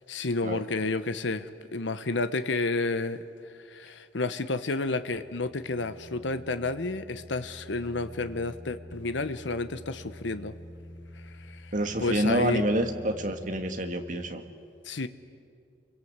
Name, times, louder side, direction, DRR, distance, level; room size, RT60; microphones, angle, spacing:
voice 1, 0.1-10.5 11.5-11.7 12.0-12.6 14.9-15.1, left 3 dB, 80° left, 11 dB, 1.0 m, -31 dB
sound 1, 4.8-14.3, equal, 65° left, 5.2 m, -47 dB
voice 2, 11.7-14.4, right 1 dB, 45° right, 7 dB, 1.7 m, -27 dB
29.0 x 23.0 x 8.1 m, 2.3 s
head